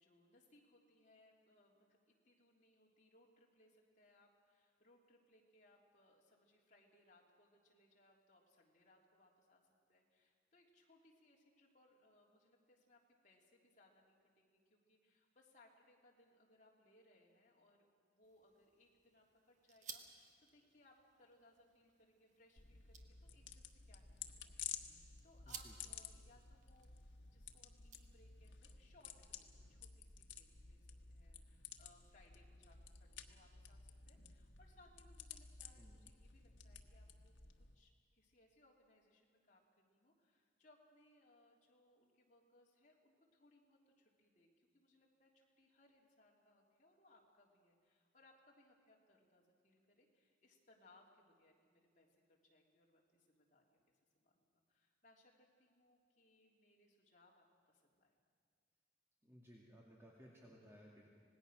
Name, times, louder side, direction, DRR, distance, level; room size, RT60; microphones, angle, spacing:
voice 1, 0.0-9.6 9.9-26.9 27.2-53.8 54.1-58.1, left 2 dB, 45° left, -2 dB, 3.2 m, -70 dB
sound 1, 18.2-28.6, right 6 dB, 45° right, 1.5 m, -60 dB
sound 2, 22.6-37.7, left 8 dB, 85° left, 1.3 m, -54 dB
voice 2, 35.8-36.1 59.2-61.1, equal, 15° right, -4 dB, 2.2 m, -61 dB
26.0 x 19.0 x 6.4 m, 2.1 s
head